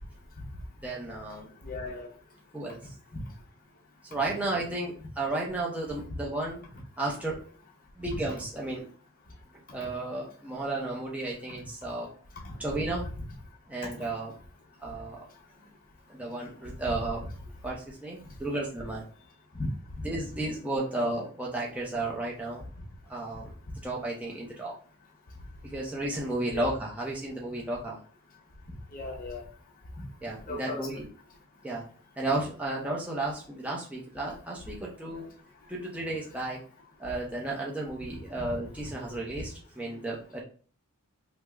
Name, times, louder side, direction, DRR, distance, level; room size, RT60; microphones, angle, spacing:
voice 1, 0.8-1.5 2.5-2.8 4.0-6.6 7.0-7.4 8.0-8.9 9.7-12.1 12.6-13.0 13.7-14.3 14.8-15.3 16.1-17.3 17.6-19.0 20.0-22.6 23.1-23.5 23.8-24.7 25.6-28.0 30.2-31.1 31.6-31.8 32.2-35.3 35.7-36.6 37.0-40.4, right 2 dB, 5° right, 0.5 m, -33 dB
voice 2, 1.6-2.1 3.1-3.2 9.8-9.9 12.4-12.5 19.5-19.7 26.5-26.7 28.9-29.5 30.0-30.1 30.5-30.9 38.4-38.9, left 2 dB, 40° left, 0.8 m, -37 dB
3.4 x 2.0 x 3.3 m
head